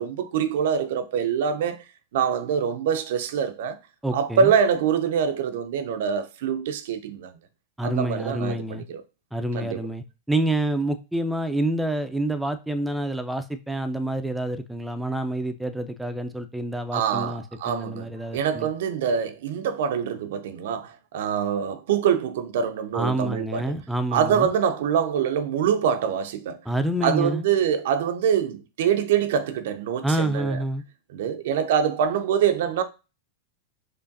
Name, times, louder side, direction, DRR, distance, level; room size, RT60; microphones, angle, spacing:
voice 1, 0.0-1.8 2.1-3.8 4.1-7.4 7.8-9.0 9.5-9.8 16.9-23.7 24.1-26.6 27.0-30.6 31.1-32.8, right 7 dB, 65° right, 0.5 m, -25 dB
voice 2, 4.0-4.5 7.8-8.9 9.3-18.7 22.9-24.5 26.7-27.4 30.0-30.8, right 1 dB, 5° right, 0.4 m, -27 dB
4.6 x 2.5 x 2.6 m
hypercardioid pair, 100°, 0 cm